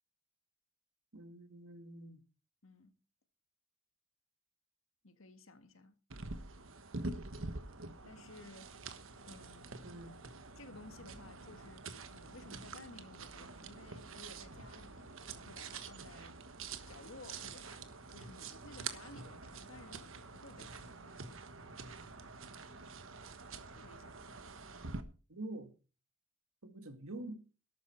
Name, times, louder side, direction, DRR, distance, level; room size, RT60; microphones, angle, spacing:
voice 1, 1.1-2.2 9.8-10.1 25.3-25.7 26.6-27.4, right 1 dB, 85° right, 1.8 m, -46 dB
voice 2, 5.0-5.9 8.0-8.9 9.2-10.0 10.5-16.4 16.9-21.2 23.7-24.4, left 2 dB, 70° left, 1.8 m, -56 dB
sound 1, 6.1-25.0, right 3 dB, 65° right, 1.3 m, -47 dB
13.5 x 12.0 x 4.5 m
head